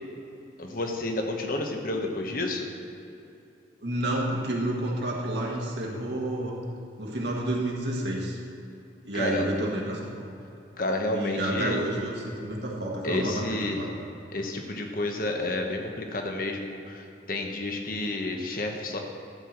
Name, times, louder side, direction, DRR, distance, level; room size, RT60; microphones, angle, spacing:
voice 1, 0.6-2.7 9.1-9.5 10.8-11.8 13.0-13.8 14.3-19.0, left 2 dB, 50° left, 3 dB, 1.1 m, -30 dB
voice 2, 3.8-6.6 7.0-8.4 9.0-10.1 11.1-13.9, right 1 dB, 70° right, -2 dB, 1.6 m, -30 dB
12.0 x 4.8 x 7.4 m, 2.8 s
head